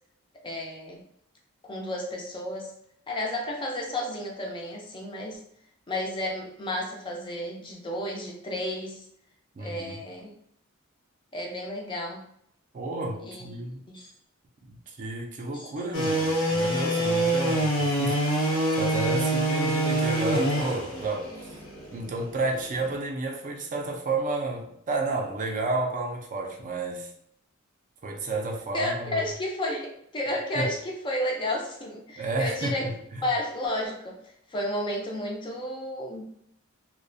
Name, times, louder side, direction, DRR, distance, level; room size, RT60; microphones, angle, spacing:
voice 1, 0.4-1.0 1.7-2.7 3.1-5.4 5.9-9.0 9.6-10.3 11.3-12.2 13.2-13.5 13.9-14.1 15.5-15.7 28.7-32.9 33.2-34.2 34.5-36.2, left 1 dB, 25° left, 0.4 m, -32 dB
voice 2, 9.6-10.0 12.7-13.8 14.9-21.3 21.9-27.1 28.0-29.2 30.6-30.7 32.2-33.3, right 2 dB, 40° right, 0.4 m, -31 dB
sound 1, 15.9-23.0, right 1 dB, 75° left, 0.8 m, -26 dB
2.4 x 2.1 x 2.5 m
head